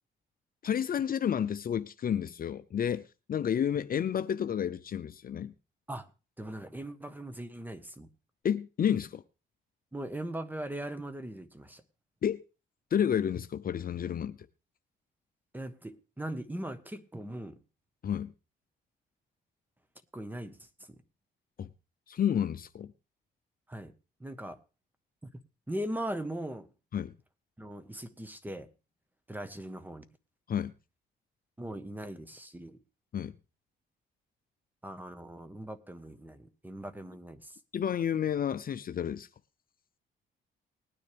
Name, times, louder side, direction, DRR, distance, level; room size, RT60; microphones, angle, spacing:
voice 1, 0.6-5.5 8.4-9.2 12.2-12.4 12.9-14.4 18.0-18.3 21.6-21.7 22.1-22.9 26.9-27.1 30.5-30.7 33.1-33.3 37.7-39.3, left 9 dB, 45° left, 0.6 m, -30 dB
voice 2, 6.4-8.1 9.9-11.8 15.5-17.6 20.1-20.7 23.7-23.9 24.2-24.6 25.2-25.3 25.7-26.7 27.6-28.7 29.3-30.0 31.6-32.8 34.8-37.6, right 1 dB, 10° right, 1.3 m, -39 dB
19.5 x 9.7 x 3.5 m
cardioid pair, 90°, 20 cm